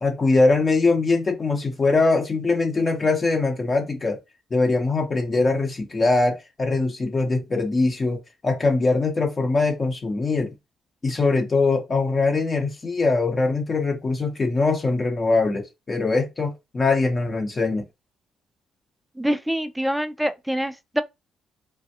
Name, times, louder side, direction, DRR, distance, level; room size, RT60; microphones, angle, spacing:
voice 1, 0.0-4.2 4.5-10.5 11.0-17.8, left 3 dB, 35° left, 0.8 m, -22 dB
voice 2, 19.2-21.0, equal, 5° right, 0.4 m, -25 dB
3.3 x 2.2 x 2.7 m
cardioid pair, 90°, 0 cm